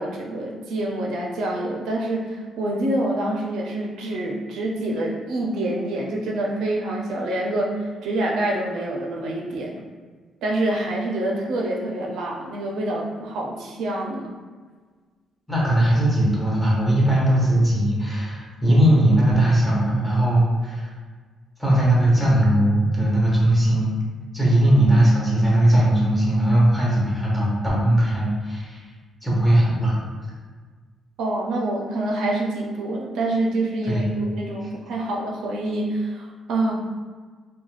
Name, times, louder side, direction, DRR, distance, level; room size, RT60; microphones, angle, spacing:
voice 1, 0.0-9.8 10.4-14.4 31.2-36.7, right 1 dB, 85° right, -1 dB, 0.4 m, -26 dB
voice 2, 15.5-20.9 21.6-23.9 24.3-28.8 29.2-30.0 33.8-34.1, right 1 dB, 5° left, -6 dB, 1.0 m, -19 dB
2.5 x 2.1 x 3.1 m, 1.5 s
cardioid pair, 90°, 0 cm